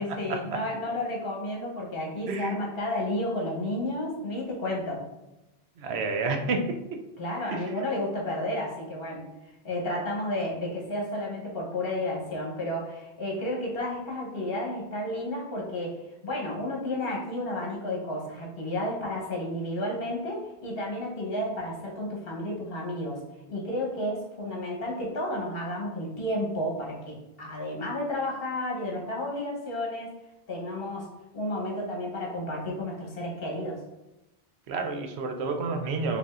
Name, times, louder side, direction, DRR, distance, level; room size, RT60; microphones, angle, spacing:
voice 1, 0.0-5.0 7.2-23.2 23.5-30.1 30.5-31.1 31.3-33.8, left 1 dB, 65° left, -2 dB, 1.2 m, -32 dB
voice 2, 5.8-6.6 7.5-7.6 34.7-36.2, right 3 dB, 85° right, 4 dB, 0.9 m, -29 dB
4.9 x 2.7 x 2.4 m, 0.97 s
omnidirectional pair, 1.1 m